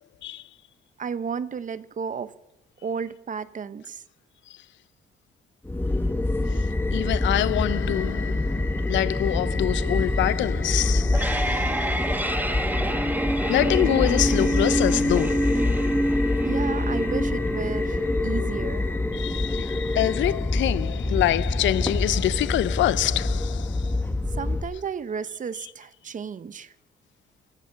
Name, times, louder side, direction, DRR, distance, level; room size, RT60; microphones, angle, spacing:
voice 1, 1.0-2.3 2.8-4.0 16.4-18.9 24.3-26.7, right 6 dB, 40° right, 0.8 m, -33 dB
sound 1, 5.7-24.6, left 2 dB, 10° left, 1.1 m, -26 dB
voice 2, 6.9-11.6 13.5-16.0 19.1-24.0, left 13 dB, 70° left, 0.5 m, -26 dB
sound 2, 10.8-21.8, right 1 dB, 10° right, 1.0 m, -28 dB
16.0 x 14.0 x 5.7 m
cardioid pair, 90°, 20 cm